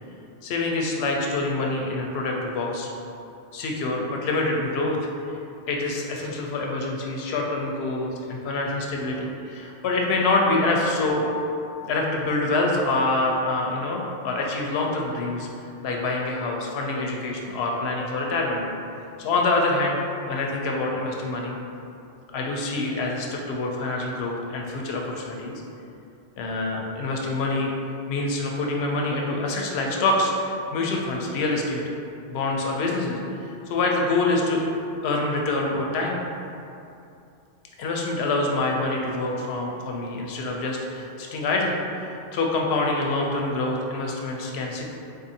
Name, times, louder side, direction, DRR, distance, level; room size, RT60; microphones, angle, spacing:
voice 1, 0.4-2.9 3.5-5.0 5.7-11.2 11.9-15.5 15.8-18.6 19.2-20.0 20.3-21.6 22.3-25.6 26.4-27.7 28.1-31.9 32.3-33.2 33.4-34.6 35.0-36.2 37.8-41.7 42.3-44.9, left 2 dB, 70° left, 0 dB, 0.8 m, -26 dB
3.8 x 2.6 x 2.7 m, 2.6 s
omnidirectional pair, 1.2 m